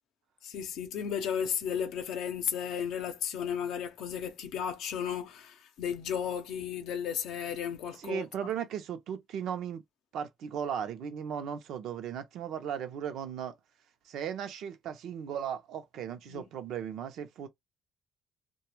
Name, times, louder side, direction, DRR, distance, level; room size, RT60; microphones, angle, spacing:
voice 1, 0.4-8.2 16.3-16.4, left 8 dB, 90° left, 0.5 m, -34 dB
voice 2, 8.0-9.8 10.1-13.5 14.1-17.5, right 8 dB, 80° right, 0.5 m, -36 dB
2.2 x 2.2 x 3.0 m
cardioid pair, 90°, 0 cm